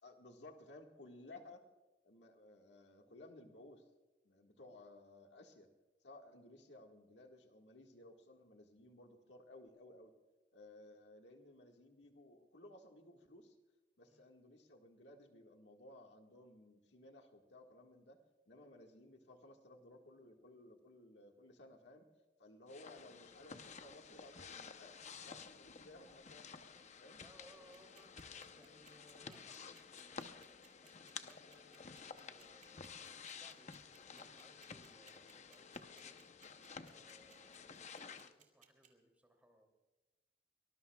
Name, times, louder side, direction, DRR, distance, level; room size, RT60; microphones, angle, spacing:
voice 1, 0.0-1.6 2.0-3.8 4.2-5.7 6.0-10.1 10.5-13.6 14.0-18.2 18.5-22.0 22.4-27.2, left 1 dB, 70° left, 3 dB, 1.7 m, -58 dB
sound 1, 22.7-38.3, left 5 dB, 40° left, 0.8 m, -53 dB
voice 2, 27.2-30.4 30.8-33.7 34.0-36.3 36.7-39.7, right 1 dB, 10° right, 3 dB, 2.8 m, -66 dB
sound 2, 27.5-38.9, right 7 dB, 45° right, 2.3 m, -65 dB
24.0 x 19.5 x 2.3 m, 1.1 s
head